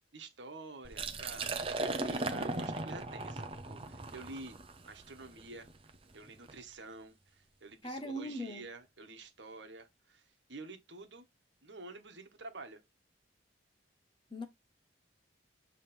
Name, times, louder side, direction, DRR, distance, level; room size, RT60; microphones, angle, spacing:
voice 1, 0.1-4.6 4.8-5.7 6.1-11.2 11.6-12.8, right 3 dB, 65° right, 1.4 m, -49 dB
Liquid, 0.8-6.6, right 2 dB, 30° right, 0.8 m, -38 dB
voice 2, 7.8-8.7 14.3-14.4, equal, 25° left, 1.0 m, -40 dB
7.4 x 3.3 x 4.4 m
head